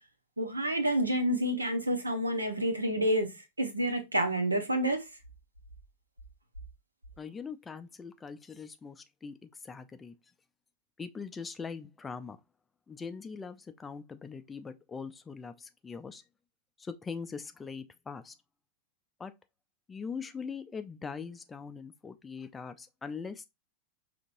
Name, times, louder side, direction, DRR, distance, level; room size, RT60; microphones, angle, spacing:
voice 1, 0.4-5.1, right 1 dB, 80° right, 0.8 m, -29 dB
voice 2, 7.2-10.1 11.0-12.4 12.9-16.2 16.8-18.3 19.2-19.3 19.9-23.4, left 5 dB, 15° left, 0.4 m, -42 dB
5.2 x 2.9 x 2.5 m
figure-of-eight pair, 90°, 0 cm